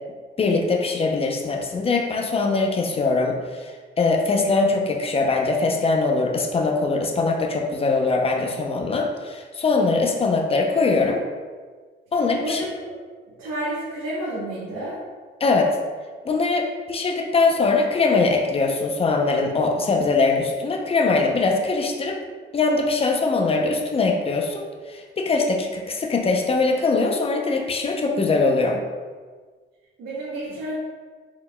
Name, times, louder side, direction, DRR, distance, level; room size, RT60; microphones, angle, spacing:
voice 1, 0.4-11.2 12.1-12.6 15.4-15.8 16.2-16.6 16.9-22.2 22.5-28.8, left 3 dB, 30° left, 3 dB, 0.6 m, -22 dB
voice 2, 13.4-15.0 30.0-30.8, right 1 dB, 85° right, -9 dB, 1.1 m, -30 dB
4.4 x 3.9 x 2.2 m, 1.5 s
cardioid pair, 90°, 20 cm